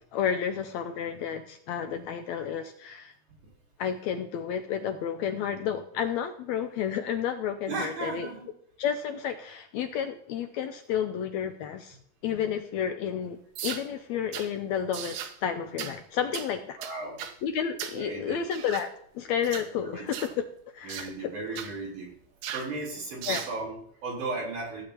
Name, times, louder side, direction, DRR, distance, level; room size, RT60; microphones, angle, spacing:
voice 1, 0.1-3.1 3.8-8.3 8.8-12.0 12.2-16.8 17.4-20.3 20.7-21.6 23.3-23.5, left 8 dB, 75° left, 7 dB, 1.7 m, -31 dB
voice 2, 7.7-8.5 16.8-17.2 17.9-18.4 19.8-20.1 20.8-22.1 22.5-24.8, right 3 dB, 70° right, -4 dB, 5.2 m, -35 dB
sound 1, 13.6-13.9 14.3-14.5 14.9-15.4 15.8-16.0 16.3-16.5 16.8-17.4 17.8-18.0 18.5-18.9 19.4-19.7 20.1-20.4 20.9-21.1 21.6-21.7 22.4-22.7 23.2-23.5, right 9 dB, 85° right, 2.4 m, -37 dB
15.5 x 8.5 x 2.9 m, 0.66 s
omnidirectional pair, 3.6 m